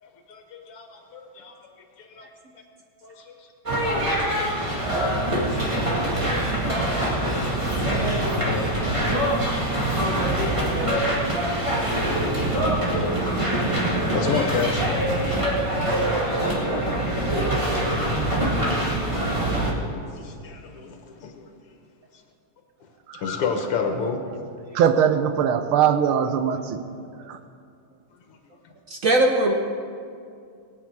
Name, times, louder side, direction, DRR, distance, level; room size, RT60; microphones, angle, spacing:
voice 1, 0.0-1.5 2.0-2.3 3.0-3.5 4.2-5.4 9.7-9.8 13.8-14.9 15.2-15.4 16.0-16.7 20.1-21.5 23.1-24.2, left 5 dB, 90° left, 3 dB, 2.2 m, -32 dB
sound 1, 3.7-19.7, right 1 dB, 15° right, 2.2 m, -24 dB
voice 2, 24.7-26.8 27.3-27.4, right 8 dB, 75° right, 9 dB, 1.7 m, -21 dB
voice 3, 28.9-29.5, right 1 dB, 60° right, 3 dB, 0.9 m, -21 dB
21.5 x 8.6 x 4.8 m, 2.3 s
omnidirectional pair, 2.4 m